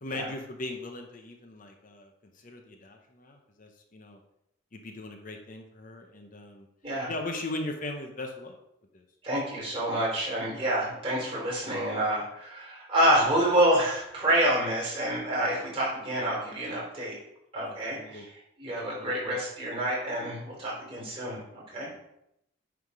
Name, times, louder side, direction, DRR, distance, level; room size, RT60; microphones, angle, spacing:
voice 1, 0.0-4.2 4.7-6.7 7.1-8.6 8.9-9.0 17.6-18.2 19.0-19.4 21.7-22.0, left 2 dB, 40° left, 4 dB, 0.9 m, -39 dB
voice 2, 9.2-17.2 17.5-21.9, right 1 dB, 25° right, -4 dB, 3.1 m, -28 dB
9.6 x 3.6 x 4.8 m, 0.81 s
head